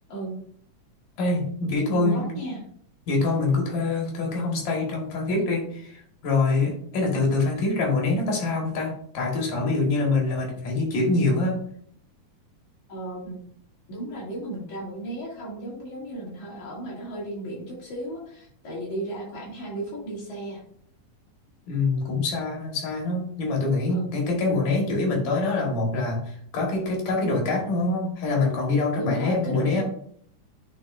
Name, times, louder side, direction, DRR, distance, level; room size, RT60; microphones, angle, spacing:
voice 1, 1.2-2.3 3.1-11.6 21.7-29.8, left 3 dB, 85° left, 0 dB, 3.3 m, -25 dB
voice 2, 1.9-2.6 12.9-13.4 13.9-20.6 23.9-24.1 29.0-29.8, right 1 dB, 70° left, -5 dB, 3.7 m, -34 dB
9.3 x 4.8 x 2.6 m, 0.64 s
omnidirectional pair, 3.6 m